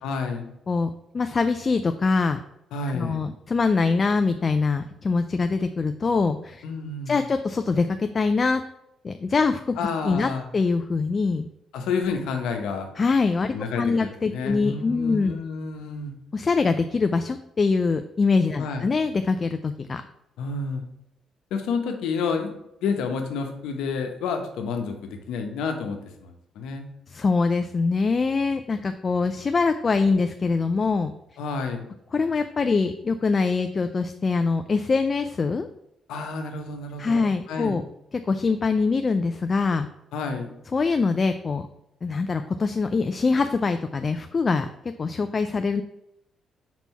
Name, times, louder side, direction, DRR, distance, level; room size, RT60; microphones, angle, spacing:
voice 1, 0.0-0.5 2.7-3.2 6.6-7.2 9.8-10.5 11.7-12.9 13.5-16.1 18.6-18.8 20.4-20.8 21.5-22.5 22.8-26.9 31.4-31.8 36.1-37.8 40.1-40.5, left 4 dB, 90° left, 5 dB, 0.9 m, -30 dB
voice 2, 1.1-2.4 2.9-6.6 7.1-8.6 9.0-9.8 10.0-11.5 13.0-15.4 16.3-20.0 27.1-31.1 32.1-35.7 37.0-37.8 38.3-39.9 40.7-41.7 42.0-44.7 45.0-45.8, left 4 dB, 35° left, 8 dB, 0.3 m, -23 dB
4.5 x 4.1 x 5.5 m, 0.82 s
cardioid pair, 90°, 0 cm